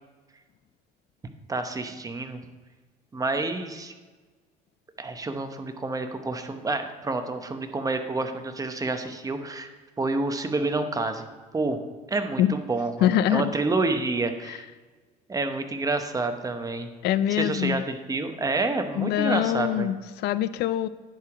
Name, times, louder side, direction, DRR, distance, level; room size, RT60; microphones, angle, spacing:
voice 1, 1.5-2.4 3.1-3.9 5.0-9.7 10.0-11.3 11.5-11.8 12.1-14.7 15.3-16.9 17.4-19.9, right 3 dB, 20° right, 7 dB, 0.8 m, -28 dB
voice 2, 13.0-13.5 14.5-14.6 17.0-17.8 19.0-20.9, left 11 dB, 75° left, 15 dB, 0.4 m, -24 dB
10.5 x 4.8 x 4.8 m, 1.4 s
cardioid pair, 110°, 17 cm